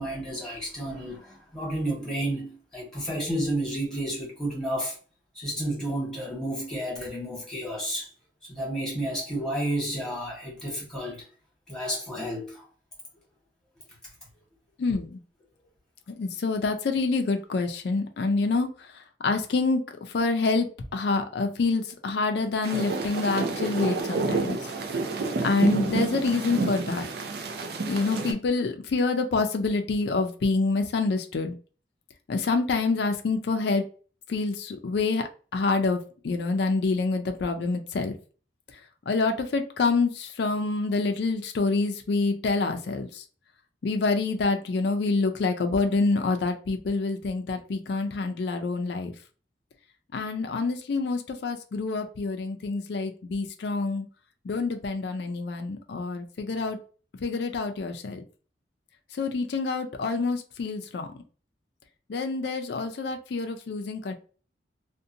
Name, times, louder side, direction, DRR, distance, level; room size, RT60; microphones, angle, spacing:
voice 1, 0.0-4.9 5.3-8.1 8.4-11.2 11.7-12.6, right 1 dB, 5° left, 1.2 m, -31 dB
voice 2, 14.8-15.2 16.1-24.6 25.4-27.1 27.9-31.5 32.3-33.9 34.3-38.1 38.7-38.8 39.1-43.2 43.8-49.1 50.1-54.1 54.4-56.8 57.2-58.2 59.1-61.2 62.1-64.1, left 3 dB, 65° left, 0.4 m, -27 dB
sound 1, 22.6-28.3, right 3 dB, 60° right, 0.5 m, -29 dB
2.7 x 2.1 x 2.5 m
head